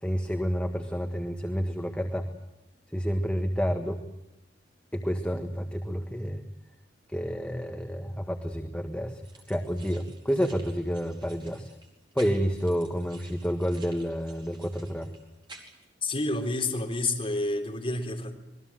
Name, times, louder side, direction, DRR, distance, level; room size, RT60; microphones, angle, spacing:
voice 1, 0.0-2.3 2.9-4.0 4.9-6.4 7.1-9.2 9.5-11.7 12.1-15.1, equal, 5° left, 3 dB, 1.6 m, -29 dB
sound 1, 9.2-15.9, right 3 dB, 30° right, 4.6 m, -52 dB
voice 2, 16.0-18.4, left 2 dB, 30° left, 1 dB, 4.0 m, -29 dB
27.0 x 21.5 x 7.7 m, 0.93 s
head